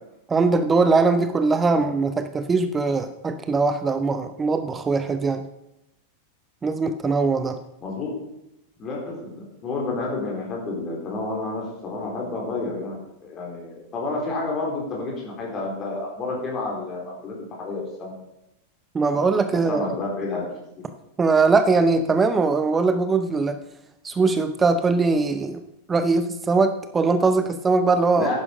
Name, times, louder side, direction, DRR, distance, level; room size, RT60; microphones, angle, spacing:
voice 1, 0.3-5.5 6.6-7.6 18.9-19.8 21.2-23.6 24.0-25.6 25.9-28.3, right 4 dB, 15° right, 10 dB, 0.7 m, -21 dB
voice 2, 7.8-8.1 8.8-12.9 13.2-18.1 19.5-20.5 28.1-28.4, left 3 dB, 25° left, -2 dB, 4.1 m, -30 dB
11.0 x 9.9 x 5.3 m, 0.87 s
figure-of-eight pair, 90°, 0 cm